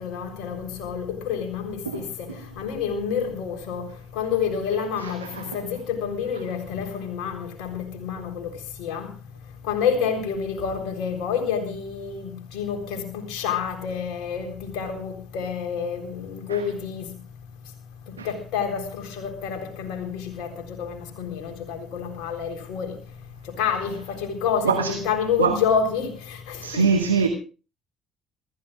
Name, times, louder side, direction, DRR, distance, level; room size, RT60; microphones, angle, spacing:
voice 1, 0.0-2.3 2.6-3.9 4.1-8.5 8.8-9.1 9.6-17.0 18.2-22.9 23.6-26.9, left 7 dB, 60° left, 3.8 m, -28 dB
voice 2, 5.0-5.6 16.5-16.6 18.2-18.3 24.6-25.0 25.4-25.6 26.6-27.3, right 5 dB, 80° right, 1.2 m, -23 dB
27.0 x 14.0 x 2.5 m
figure-of-eight pair, 50°, 0 cm